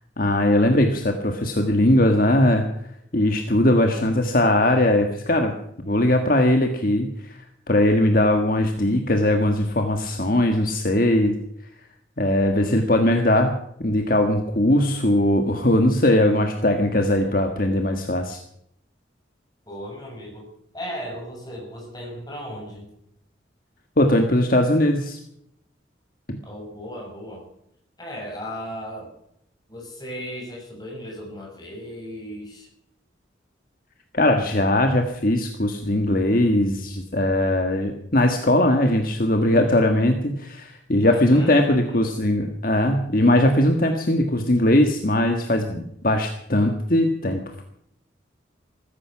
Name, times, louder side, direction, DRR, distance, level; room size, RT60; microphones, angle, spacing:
voice 1, 0.2-2.6 3.1-5.5 5.8-7.4 7.7-11.4 12.2-18.4 24.0-25.2 26.3-26.4 34.1-47.6, left 1 dB, 50° left, 5 dB, 1.5 m, -20 dB
voice 2, 19.7-20.5 20.7-22.9 26.4-27.4 28.0-29.1 29.7-32.7 41.0-42.1, equal, 20° left, 0 dB, 6.6 m, -36 dB
15.5 x 14.5 x 6.1 m, 0.74 s
head